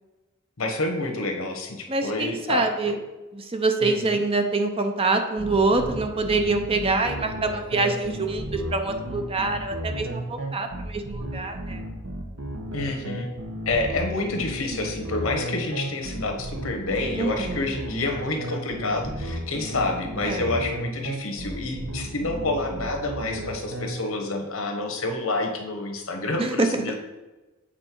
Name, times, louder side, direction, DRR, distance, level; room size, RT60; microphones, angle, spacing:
voice 1, 0.6-3.0 3.8-4.2 12.7-13.3 13.6-26.9, left 2 dB, 80° left, 3 dB, 1.2 m, -28 dB
voice 2, 1.9-3.0 3.3-11.8 17.2-17.7 20.2-20.5 26.4-26.8, right 3 dB, 25° right, 6 dB, 0.6 m, -25 dB
sound 1, 5.4-23.9, right 1 dB, 75° right, 1.2 m, -33 dB
7.6 x 4.4 x 4.5 m, 1.1 s
head